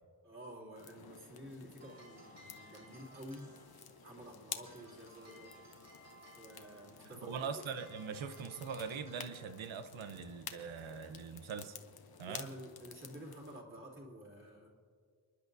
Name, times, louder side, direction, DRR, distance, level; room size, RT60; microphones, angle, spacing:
voice 1, 0.2-3.5 4.0-5.6 6.4-7.5 12.2-14.7, equal, 25° right, 2.8 m, -50 dB
sound 1, 0.7-13.6, left 7 dB, 50° left, 0.9 m, -52 dB
sound 2, 1.5-11.9, right 1 dB, 45° right, 3.8 m, -61 dB
voice 2, 7.1-11.8 12.2-12.5, right 6 dB, 80° right, 0.9 m, -42 dB
29.5 x 10.5 x 2.7 m
wide cardioid pair, 150°, 47 cm